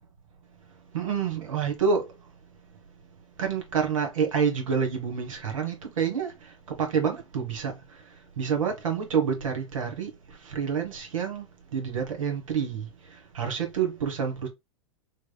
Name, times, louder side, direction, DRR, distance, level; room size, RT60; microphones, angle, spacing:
voice 1, 0.9-2.0 3.4-6.3 6.8-7.7 8.4-10.1 10.4-11.4 11.7-12.9 13.3-14.5, right 6 dB, 75° right, 1.5 m, -27 dB
3.5 x 3.2 x 2.3 m
hypercardioid pair, 100°, 17 cm